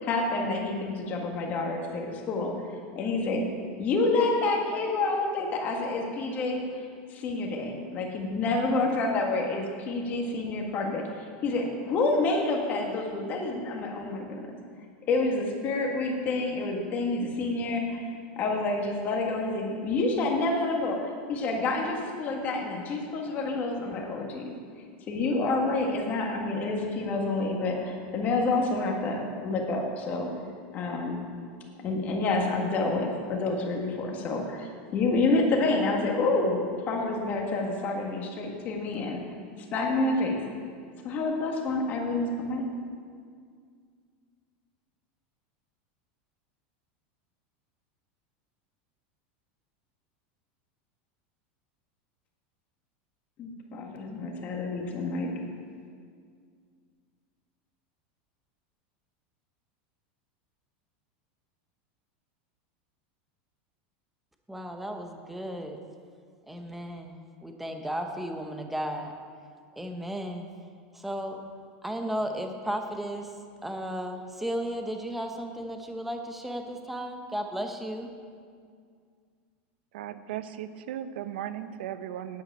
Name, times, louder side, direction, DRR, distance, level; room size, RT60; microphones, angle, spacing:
voice 1, 0.0-2.5 2.9-3.5 3.8-6.6 7.1-11.0 11.4-14.5 15.1-18.1 18.4-24.5 25.1-30.3 30.7-31.3 31.8-39.2 39.7-40.4 41.0-42.7 53.4-55.3, left 3 dB, 30° left, 1 dB, 1.7 m, -28 dB
voice 2, 64.5-65.8 66.5-69.1 69.8-70.5 70.9-71.4 71.8-73.4 73.6-78.1, equal, 5° right, 4 dB, 0.8 m, -34 dB
voice 3, 79.9-82.4, right 11 dB, 75° right, 12 dB, 0.7 m, -36 dB
9.4 x 7.9 x 8.8 m, 2.1 s
supercardioid pair, 165°, 6 cm